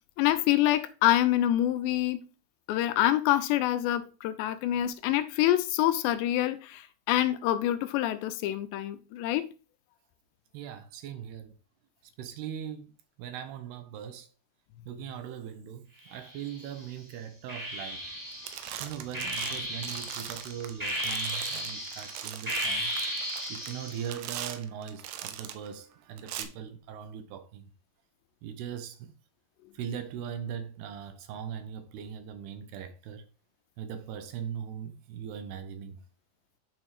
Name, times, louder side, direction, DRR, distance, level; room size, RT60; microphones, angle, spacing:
voice 1, 0.2-2.2 2.7-9.5, left 13 dB, 80° left, 2.9 m, -26 dB
voice 2, 10.5-11.6 12.2-12.9 13.2-14.3 14.9-18.1 18.8-22.9 23.5-27.7 28.4-29.1 29.7-33.3 33.8-36.0, right 8 dB, 75° right, 2.9 m, -40 dB
sound 1, 16.1-16.8 17.5-24.1, equal, 5° right, 2.0 m, -35 dB
sound 2, 18.0-18.2 18.5-25.7 26.2-26.4, right 11 dB, 90° right, 3.1 m, -40 dB
9.2 x 5.2 x 4.8 m
omnidirectional pair, 5.1 m